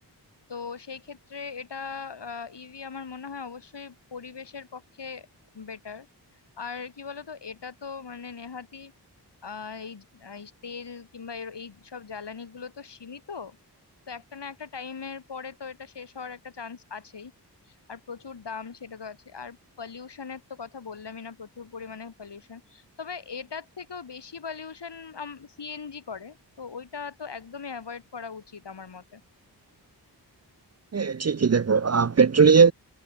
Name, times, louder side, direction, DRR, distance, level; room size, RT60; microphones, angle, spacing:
voice 1, 0.5-5.3 5.5-6.1 6.6-8.9 9.4-13.6 14.1-17.3 17.7-29.2, left 5 dB, 75° left, 5.2 m, -39 dB
voice 2, 30.9-32.7, right 5 dB, 40° right, 0.7 m, -19 dB
wide cardioid pair, 70°, 42 cm